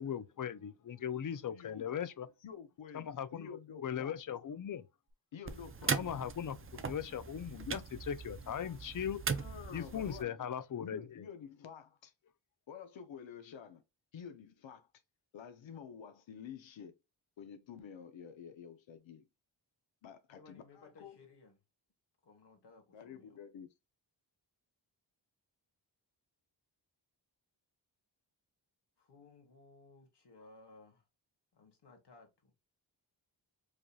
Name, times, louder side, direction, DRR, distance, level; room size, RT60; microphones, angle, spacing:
voice 1, 0.0-2.3 2.9-3.5 3.8-4.8 5.9-9.2 9.7-11.2, left 8 dB, 45° left, 0.5 m, -39 dB
voice 2, 1.3-1.9 2.4-4.2 5.3-6.0 9.3-10.5 10.8-12.1 12.7-13.8 14.1-14.9 15.3-17.0 17.4-19.3 20.0-21.2 22.9-23.7, left 7 dB, 85° left, 0.7 m, -50 dB
sound 1, 5.4-10.2, right 5 dB, 30° right, 0.4 m, -39 dB
voice 3, 20.3-21.6 22.2-23.4 29.0-31.0 31.5-32.5, left 3 dB, 65° left, 1.4 m, -60 dB
5.0 x 2.7 x 2.2 m
wide cardioid pair, 165°, 44 cm